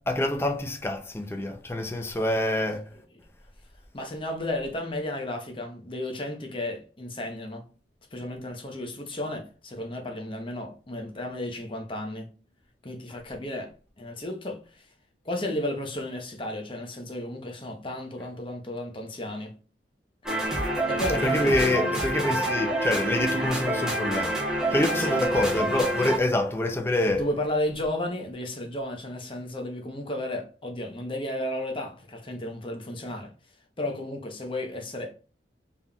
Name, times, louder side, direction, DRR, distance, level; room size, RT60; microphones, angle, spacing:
voice 1, 0.1-2.9 21.2-24.4 24.7-27.2, left 1 dB, 15° left, 0.5 m, -26 dB
voice 2, 3.9-7.6 8.1-12.3 12.8-14.9 15.2-19.5 20.9-22.1 24.9-25.1 27.2-33.3 33.8-35.1, left 1 dB, 30° left, 0.9 m, -33 dB
sound 1, 20.2-26.2, right 1 dB, 5° right, 1.0 m, -27 dB
4.1 x 3.6 x 2.4 m
head